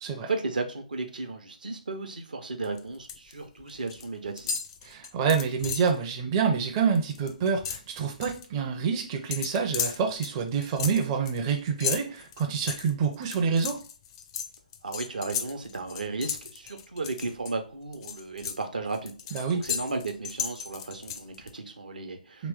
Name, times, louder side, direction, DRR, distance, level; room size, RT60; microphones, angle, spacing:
voice 1, 0.2-4.6 14.8-22.5, right 3 dB, 75° right, 6 dB, 0.7 m, -35 dB
sound 1, 2.6-3.3 3.6-4.1 4.4-6.0 6.4-6.5 6.8-8.5 9.3-17.5 17.9-21.5, left 7 dB, 35° left, 0.4 m, -35 dB
voice 2, 4.8-13.8 19.3-19.6 22.4-22.5, right 6 dB, 30° right, 3 dB, 0.5 m, -27 dB
3.0 x 3.0 x 3.4 m, 0.38 s
figure-of-eight pair, 130°, 5 cm